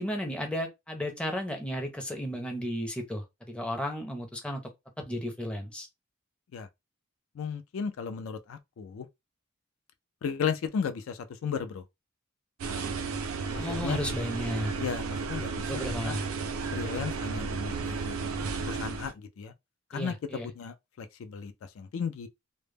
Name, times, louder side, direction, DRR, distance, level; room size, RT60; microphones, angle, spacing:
voice 1, 0.0-4.6 5.0-5.9 13.6-14.7 15.7-16.3 19.9-20.5, equal, 5° left, 0.5 m, -34 dB
voice 2, 7.3-9.1 10.2-11.8 12.7-12.9 13.5-14.0 14.8-16.2 16.7-18.2 18.6-19.5 19.9-22.3, left 6 dB, 70° left, 0.3 m, -35 dB
sound 1, 12.6-19.1, right 4 dB, 75° right, 0.4 m, -33 dB
2.1 x 2.0 x 3.2 m
head